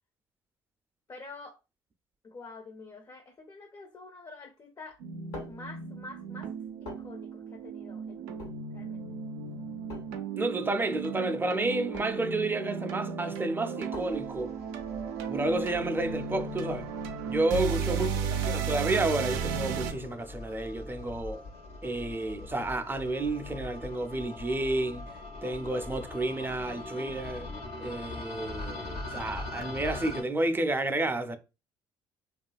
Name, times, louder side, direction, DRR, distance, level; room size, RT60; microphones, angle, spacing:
voice 1, 1.1-1.6 2.2-5.0 5.5-6.5 6.8-9.0 17.9-18.7, left 3 dB, 35° left, 0.5 m, -48 dB
sound 1, 4.9-16.4, left 2 dB, 85° left, 1.1 m, -49 dB
sound 2, 5.0-19.9, right 6 dB, 85° right, 0.4 m, -35 dB
voice 2, 10.4-14.5 15.3-16.9 17.3-21.4 21.8-25.0 25.4-27.5 27.8-31.4, right 2 dB, 20° right, 0.4 m, -31 dB
sound 3, 14.0-30.2, left 2 dB, 65° left, 0.8 m, -42 dB
2.7 x 2.4 x 2.3 m
hypercardioid pair, 60°, 11 cm